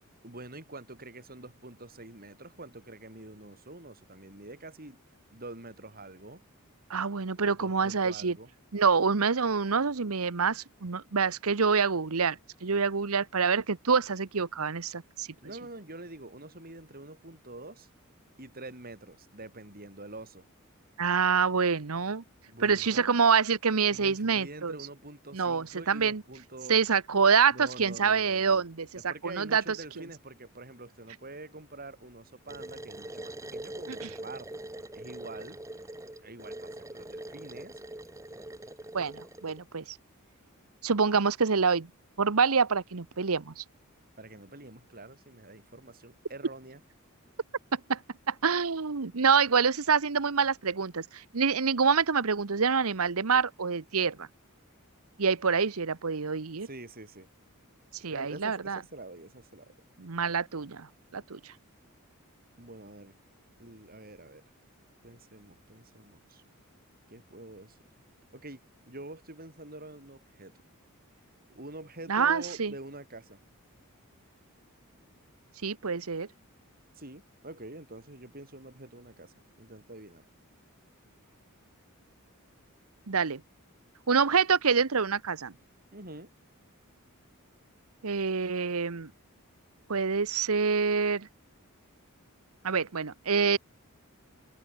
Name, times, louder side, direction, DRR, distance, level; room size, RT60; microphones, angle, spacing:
voice 1, 0.2-5.0 5.3-6.4 7.5-8.5 15.4-17.9 18.4-20.4 22.5-23.1 23.9-26.8 27.5-28.6 29.0-34.6 34.9-35.6 36.2-37.8 44.2-46.8 56.6-57.3 58.1-59.7 62.6-63.1 63.6-64.4 65.0-66.4 67.1-67.8 68.3-68.6 68.9-70.5 71.5-73.4 76.9-80.2 85.9-86.3, right 2 dB, 45° right, 7.9 m, -46 dB
voice 2, 6.9-8.4 8.7-15.3 21.0-22.2 22.6-24.7 25.3-26.2 26.7-28.9 29.2-29.6 34.0-34.1 38.9-40.0 40.8-41.9 42.2-43.6 47.7-48.0 48.3-54.3 55.2-56.7 58.0-58.8 60.0-60.9 61.1-61.4 72.1-72.7 75.6-76.3 83.1-83.4 84.1-85.5 88.0-89.1 89.9-91.3 92.6-93.6, right 5 dB, 80° right, 1.0 m, -26 dB
sound 1, 32.5-39.6, right 1 dB, 15° right, 1.5 m, -43 dB
open air
head